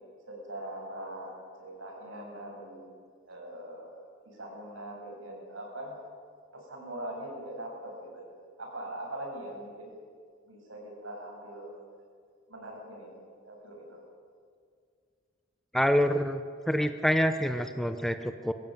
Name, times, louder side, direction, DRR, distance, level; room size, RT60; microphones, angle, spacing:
voice 1, 0.3-2.9 3.3-3.9 4.2-6.0 6.5-8.2 8.6-9.9 10.4-11.8 12.5-13.1 13.4-14.0, right 1 dB, 80° right, -1 dB, 7.6 m, -41 dB
voice 2, 15.7-18.5, equal, ahead, 8 dB, 0.8 m, -27 dB
23.5 x 15.0 x 9.4 m, 2.1 s
head